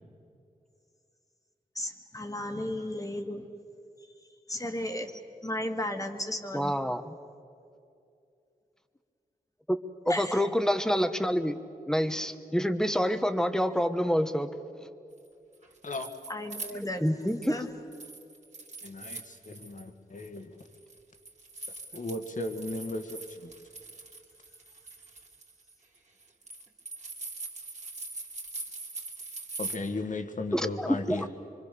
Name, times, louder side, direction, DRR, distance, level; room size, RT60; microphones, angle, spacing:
voice 1, 1.8-3.4 4.5-5.1 5.4-6.8 10.1-10.5 16.3-17.1 17.5-17.7, left 1 dB, 20° left, 4 dB, 1.9 m, -34 dB
voice 2, 6.5-7.2 9.7-9.8 10.1-11.6 11.9-14.5 17.0-17.6 30.5-30.7 31.2-31.3, equal, 5° left, 9 dB, 1.1 m, -27 dB
sound 1, 15.5-17.6 17.9-19.8 20.2-29.8, right 3 dB, 45° right, 2.9 m, -42 dB
voice 3, 18.8-20.6 21.9-23.5 29.6-31.3, left 2 dB, 55° left, 6 dB, 1.8 m, -36 dB
25.5 x 24.5 x 6.9 m, 2.5 s
wide cardioid pair, 95°, 16 cm